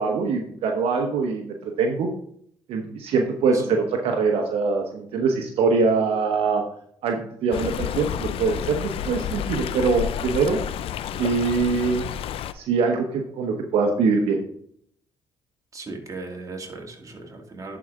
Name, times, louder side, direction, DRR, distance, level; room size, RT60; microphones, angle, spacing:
voice 1, 0.0-2.1 2.7-6.6 7.0-10.6 11.2-12.1 12.5-14.4, right 4 dB, 75° right, 2 dB, 1.0 m, -23 dB
Stream, 7.5-12.5, left 9 dB, 70° left, 0.5 m, -30 dB
voice 2, 15.7-17.8, right 3 dB, 35° right, 1 dB, 2.3 m, -37 dB
11.0 x 4.8 x 3.7 m, 0.66 s
supercardioid pair, 70°, 10 cm